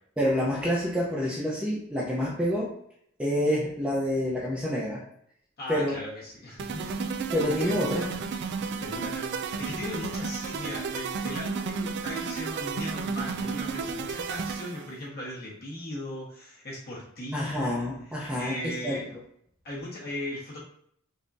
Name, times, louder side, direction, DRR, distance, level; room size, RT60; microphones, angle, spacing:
voice 1, 0.2-2.7 3.2-5.0 5.7-6.0 7.3-8.2 17.3-19.0, equal, 5° right, -6 dB, 0.7 m, -28 dB
voice 2, 5.6-7.1 7.6-8.2 8.6-19.1 19.6-20.6, left 1 dB, 50° left, -6 dB, 1.3 m, -38 dB
sound 1, 6.6-14.9, right 5 dB, 55° right, 0.3 m, -33 dB
5.3 x 2.9 x 2.6 m, 0.68 s
head